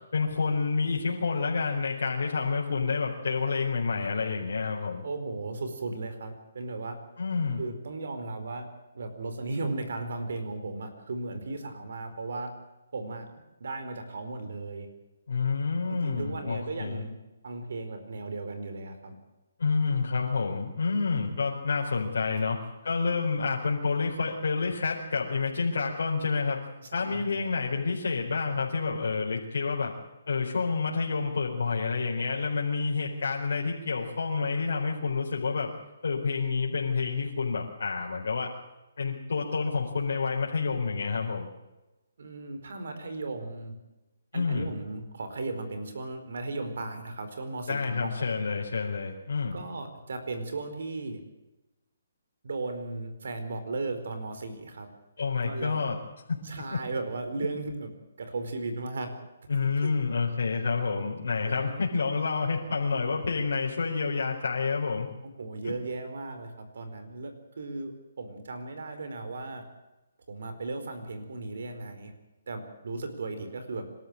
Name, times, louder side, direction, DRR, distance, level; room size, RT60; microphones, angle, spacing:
voice 1, 0.1-5.0 7.2-7.6 15.3-17.0 19.6-26.6 26.9-29.9 30.3-35.7 36.0-38.5 39.0-41.5 44.3-44.7 47.7-49.6 55.2-56.0 56.3-56.4 56.7-56.8 59.5-65.1 65.6-65.7, left 4 dB, 75° left, -3 dB, 4.4 m, -28 dB
voice 2, 5.0-7.0 7.6-8.7 8.9-12.5 12.9-13.3 13.6-14.9 15.9-17.2 17.4-19.1 26.8-27.5 32.7-32.9 42.2-43.7 44.3-48.1 49.5-51.2 52.4-54.9 55.4-55.8 56.4-57.9 58.2-59.1 59.5-59.9 61.5-61.8 65.4-69.7 70.3-72.1 72.5-73.9, right 3 dB, 70° right, 8 dB, 4.5 m, -36 dB
26.0 x 13.5 x 8.7 m, 1.0 s
hypercardioid pair, 155°, 0 cm